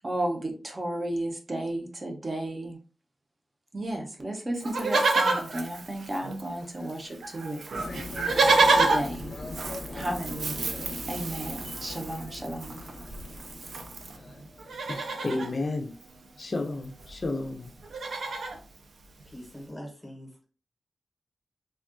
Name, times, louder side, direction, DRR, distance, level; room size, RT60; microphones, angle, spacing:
voice 1, 0.0-2.8 3.7-7.6 8.7-9.3 9.9-10.8 11.1-12.8, right 1 dB, 30° right, 0.6 m, -33 dB
Livestock farm animals working animals, 4.6-6.6 6.9-7.0 7.2-14.2 14.6-15.5 16.7-16.8 17.0-17.3 17.6-18.6 19.2-19.3, right 3 dB, 75° right, 0.4 m, -28 dB
sound 1, 7.7-15.5, left 2 dB, 85° left, 0.6 m, -41 dB
voice 2, 14.9-17.7 18.0-18.2, left 2 dB, 35° left, 0.4 m, -33 dB
voice 3, 19.2-20.5, equal, 10° left, 0.8 m, -43 dB
3.4 x 2.2 x 2.5 m
wide cardioid pair, 175°, 0 cm